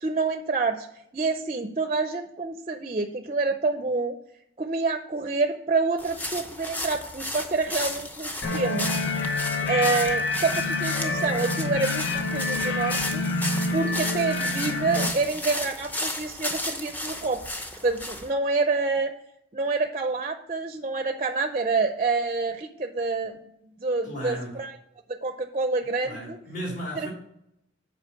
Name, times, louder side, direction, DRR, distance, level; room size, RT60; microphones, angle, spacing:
voice 1, 0.0-0.9 1.1-4.2 4.6-8.9 9.7-13.2 13.7-17.4 17.8-19.1 19.5-24.7 25.1-26.4, right 3 dB, 30° right, 8 dB, 0.5 m, -27 dB
sound 1, 6.0-18.3, left 1 dB, 10° left, 0.7 m, -34 dB
sound 2, 8.4-15.1, left 2 dB, 70° left, 1.2 m, -27 dB
voice 2, 24.0-24.6 26.0-27.1, equal, 45° left, -4 dB, 3.5 m, -35 dB
7.9 x 5.0 x 5.8 m, 0.78 s
head